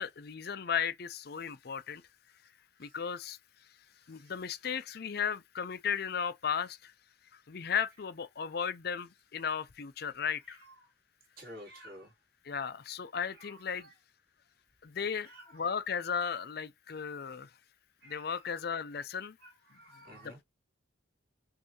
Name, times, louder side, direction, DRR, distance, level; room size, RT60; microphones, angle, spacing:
voice 1, 0.0-2.0 2.8-3.4 4.1-6.9 7.5-10.6 12.4-13.9 14.8-17.5 18.0-19.4 20.2-20.4, left 7 dB, 50° left, 0.5 m, -35 dB
voice 2, 11.4-12.1 13.3-13.9 15.2-15.5 18.0-18.6 19.4-20.4, equal, 50° right, 2.9 m, -52 dB
6.2 x 2.7 x 2.8 m
head